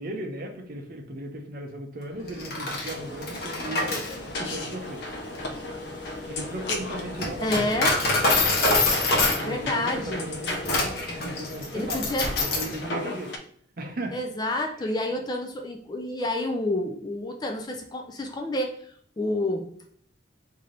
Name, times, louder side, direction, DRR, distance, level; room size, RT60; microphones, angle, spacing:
voice 1, 0.0-3.9 4.4-5.1 6.2-8.3 9.4-13.3 13.8-14.1 14.8-14.9, right 1 dB, 50° right, 4 dB, 0.6 m, -36 dB
Coin (dropping), 2.3-12.8, left 2 dB, 55° left, 0.9 m, -27 dB
sound 1, 2.9-13.4, left 2 dB, 70° left, 0.5 m, -35 dB
voice 2, 7.4-8.0 9.4-10.3 11.7-12.3 13.0-13.2 14.1-19.7, left 1 dB, 20° left, 3 dB, 0.3 m, -29 dB
3.3 x 2.7 x 3.8 m, 0.62 s
head